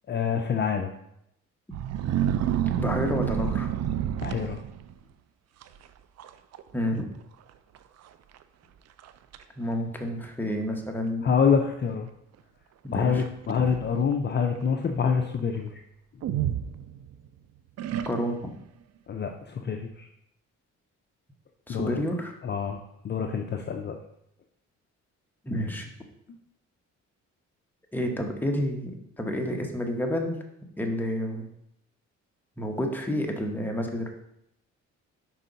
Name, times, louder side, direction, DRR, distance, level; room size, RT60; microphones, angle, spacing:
voice 1, 0.1-0.9 4.2-4.6 11.2-12.1 12.9-15.8 19.1-20.1 21.7-22.0 22.4-24.0, left 6 dB, 35° left, 4 dB, 0.5 m, -26 dB
sound 1, 1.7-5.0 5.6-5.9 6.2-6.6 6.9-7.0 7.8-7.9 8.4-8.5 9.0-9.4 10.2-10.3 13.2-14.2 16.2-17.3 17.8-18.5, right 10 dB, 60° right, 0.5 m, -29 dB
voice 2, 2.8-3.7 6.7-7.1 9.6-11.4 12.8-13.2 18.0-18.5 21.7-22.3 25.4-25.9 27.9-30.4 30.8-31.5 32.6-34.1, equal, 5° left, 2 dB, 1.0 m, -29 dB
5.6 x 4.5 x 3.9 m, 0.78 s
cardioid pair, 90°, 30 cm